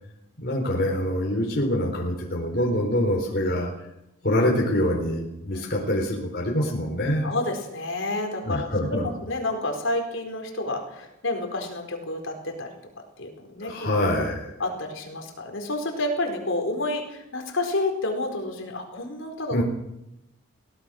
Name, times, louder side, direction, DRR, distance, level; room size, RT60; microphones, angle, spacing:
voice 1, 0.4-3.7 4.2-7.3 8.4-9.1 13.6-14.5 19.5-19.6, left 1 dB, 45° left, -1 dB, 3.9 m, -25 dB
voice 2, 5.5-5.9 7.2-9.0 9.3-12.7 13.2-13.7 14.6-19.6, left 2 dB, 60° left, 3 dB, 4.4 m, -29 dB
22.5 x 17.5 x 6.5 m, 0.88 s
head